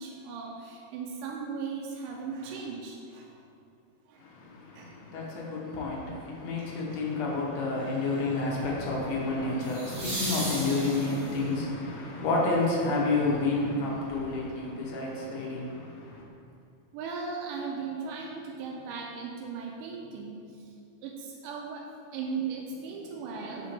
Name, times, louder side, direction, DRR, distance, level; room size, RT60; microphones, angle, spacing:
voice 1, 0.0-3.4 4.1-4.3 4.7-5.0 16.9-20.7 21.0-23.7, right 5 dB, 85° right, -1 dB, 2.1 m, -37 dB
voice 2, 4.2-16.2, left 3 dB, 65° left, -4 dB, 1.9 m, -30 dB
sound 1, 6.6-6.9 9.6-11.5 14.4-14.5, right 1 dB, 45° right, 1.2 m, -36 dB
5.5 x 5.2 x 4.1 m, 2.5 s
omnidirectional pair, 3.7 m